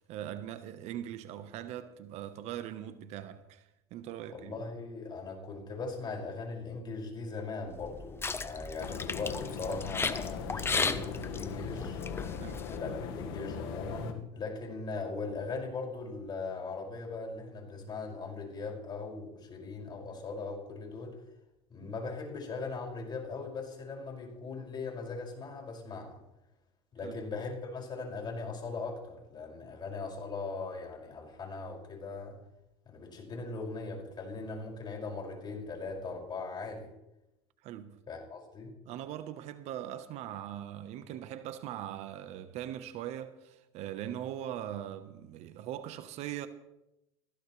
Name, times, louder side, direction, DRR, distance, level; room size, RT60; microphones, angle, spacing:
voice 1, 0.1-4.6 12.4-12.7 21.8-21.9 27.0-27.1 33.4-33.5 37.6-38.0 38.8-46.5, right 11 dB, 60° right, 1.2 m, -41 dB
voice 2, 4.3-12.0 12.7-21.1 21.7-26.2 26.9-32.4 32.9-36.9 38.1-38.7, left 3 dB, 35° left, 6.1 m, -39 dB
sound 1, 7.7-12.8, left 4 dB, 20° left, 1.0 m, -35 dB
sound 2, 8.8-14.1, left 7 dB, 75° left, 1.8 m, -40 dB
19.0 x 15.0 x 3.3 m
hypercardioid pair, 90°, 13 cm